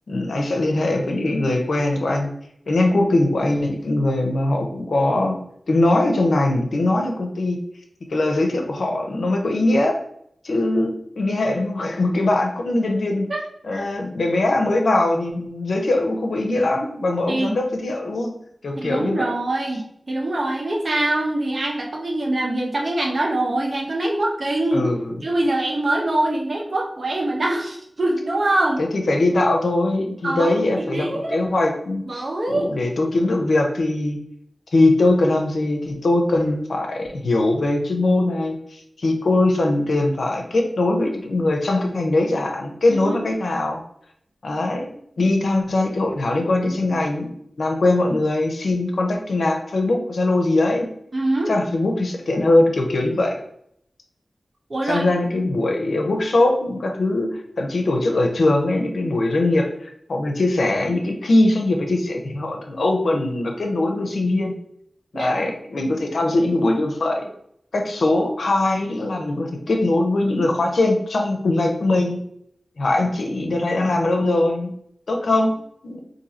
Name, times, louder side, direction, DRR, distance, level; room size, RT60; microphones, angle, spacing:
voice 1, 0.1-2.3 2.7-5.4 5.7-7.6 8.1-10.0 10.4-13.3 13.6-18.3 18.6-19.3 24.7-25.2 28.9-34.2 34.7-43.8 44.4-44.8 45.2-47.3 47.6-50.9 51.5-53.3 54.8-64.5 65.1-67.3 67.7-72.2 72.8-74.7 75.1-75.5 75.8-76.0, left 2 dB, 85° left, 2 dB, 0.6 m, -21 dB
voice 2, 18.8-24.9 25.2-28.8 30.2-31.4 32.1-32.7 42.9-43.2 51.1-51.5 54.7-55.1 65.1-65.3, right 1 dB, 60° right, 0 dB, 0.8 m, -23 dB
2.7 x 2.6 x 4.2 m, 0.72 s
cardioid pair, 50°, 0 cm